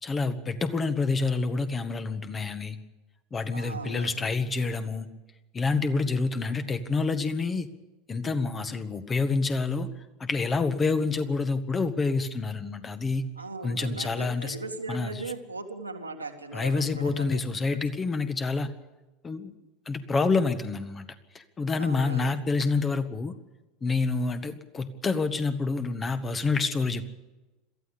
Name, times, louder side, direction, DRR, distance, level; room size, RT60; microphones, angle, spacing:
voice 1, 0.0-2.8 3.3-5.1 5.5-7.7 8.1-9.9 10.2-13.2 13.6-14.5 14.9-15.1 16.5-18.7 19.2-19.5 19.8-21.0 21.3-23.3 23.8-27.1, left 4 dB, 20° left, 10 dB, 1.6 m, -27 dB
voice 2, 3.5-4.3 13.4-17.8 21.8-22.4, right 3 dB, 85° right, 2 dB, 2.1 m, -39 dB
22.5 x 14.5 x 8.6 m, 1.1 s
figure-of-eight pair, 75°, 0 cm